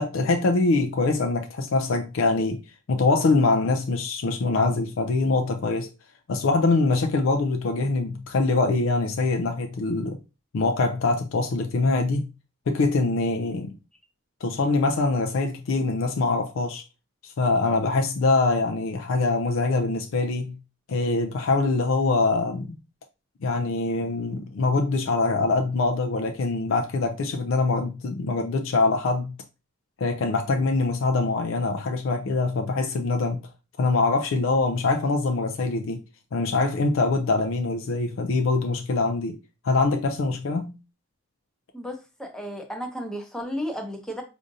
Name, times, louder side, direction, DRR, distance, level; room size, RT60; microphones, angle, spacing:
voice 1, 0.0-2.6 2.9-5.9 6.3-10.2 10.5-12.3 12.7-13.8 14.4-16.8 17.2-20.6 20.9-22.8 23.4-29.4 30.0-33.5 33.8-36.0 36.3-39.4 39.6-40.7, left 3 dB, 70° left, 0.4 m, -24 dB
voice 2, 41.7-44.2, equal, 5° left, 0.6 m, -33 dB
4.8 x 2.6 x 2.6 m
head